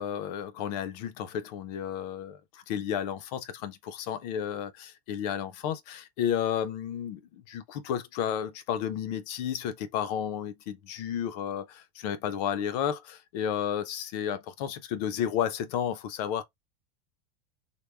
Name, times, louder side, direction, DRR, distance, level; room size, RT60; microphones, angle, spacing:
voice 1, 0.0-16.4, left 9 dB, 40° left, 0.5 m, -32 dB
3.3 x 2.1 x 3.4 m
supercardioid pair, 170°, 30 cm